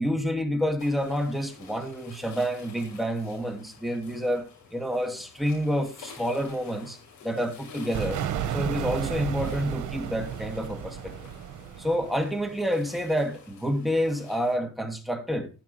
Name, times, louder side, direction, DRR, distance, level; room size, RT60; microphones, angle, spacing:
voice 1, 0.0-4.4 4.7-7.0 7.2-8.2 8.5-11.1 11.8-15.5, equal, ahead, 2.6 m, -28 dB
sound 1, 0.8-14.6, left 5 dB, 85° left, 6.3 m, -50 dB
sound 2, 7.9-12.6, right 9 dB, 75° right, 1.5 m, -33 dB
15.0 x 6.7 x 3.5 m
cardioid pair, 90°, 30 cm